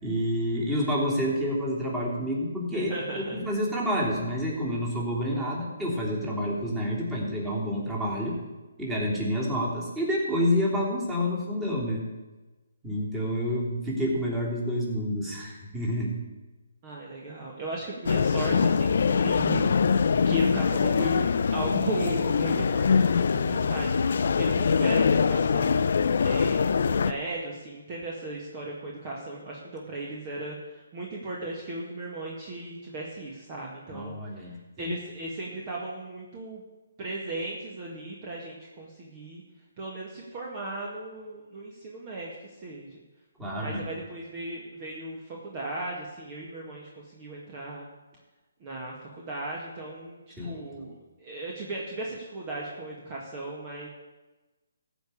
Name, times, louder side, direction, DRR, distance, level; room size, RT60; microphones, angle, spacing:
voice 1, 0.0-8.4 8.8-12.1 12.8-16.2 33.9-34.9 43.4-43.9 50.4-50.6, equal, 10° right, -4 dB, 3.2 m, -28 dB
voice 2, 2.7-3.4 16.8-19.7 20.2-25.9 26.2-36.6 37.0-39.4 39.8-43.0 43.6-47.9 48.6-53.9, right 1 dB, 30° right, -2 dB, 2.0 m, -36 dB
sound 1, 18.1-27.1, left 6 dB, 60° left, 0.6 m, -23 dB
15.0 x 5.2 x 8.5 m, 1.2 s
figure-of-eight pair, 145°, 0 cm